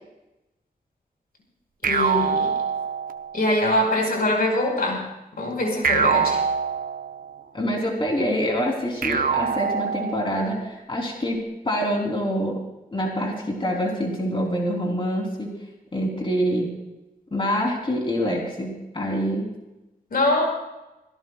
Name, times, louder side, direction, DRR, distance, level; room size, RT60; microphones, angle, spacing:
voice 1, 1.8-2.5 3.3-5.1 5.4-6.4 20.1-20.5, left 1 dB, 75° left, 1 dB, 4.6 m, -23 dB
sound 1, 1.8-3.5 5.8-7.4 9.0-10.5, right 6 dB, 70° right, 0.8 m, -24 dB
voice 2, 7.5-12.6 12.9-15.6 15.9-16.7 17.3-19.5, equal, 35° left, -1 dB, 3.4 m, -26 dB
24.5 x 17.0 x 2.4 m, 0.99 s
wide cardioid pair, 95°, 15 cm